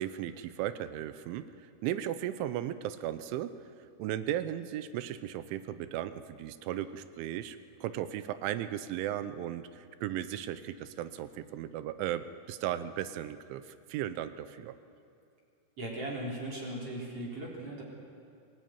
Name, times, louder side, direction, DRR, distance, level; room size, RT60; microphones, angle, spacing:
voice 1, 0.0-3.5 4.0-14.8, right 11 dB, 80° right, 12 dB, 3.1 m, -36 dB
voice 2, 15.8-17.8, right 1 dB, 30° right, -3 dB, 4.3 m, -38 dB
26.5 x 17.5 x 9.1 m, 2.6 s
omnidirectional pair, 5.6 m